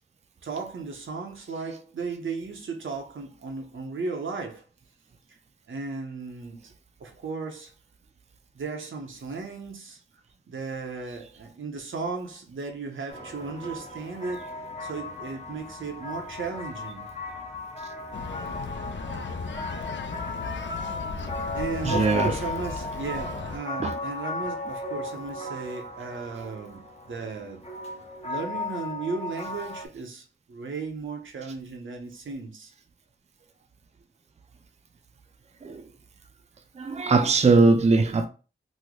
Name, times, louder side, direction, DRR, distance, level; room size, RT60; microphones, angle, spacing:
voice 1, 0.4-4.7 5.7-6.7 7.0-7.7 8.5-10.0 10.5-14.5 14.8-17.1 21.5-27.6 28.2-32.7, right 4 dB, 85° right, 0.7 m, -35 dB
sound 1, 13.1-29.9, left 2 dB, 35° left, 0.7 m, -36 dB
sound 2, 18.1-23.6, left 4 dB, 70° left, 0.4 m, -36 dB
voice 2, 21.8-22.3 23.8-24.0 35.6-35.8 36.8-38.3, right 3 dB, 35° right, 0.4 m, -20 dB
3.1 x 2.0 x 3.6 m
wide cardioid pair, 90°, 20 cm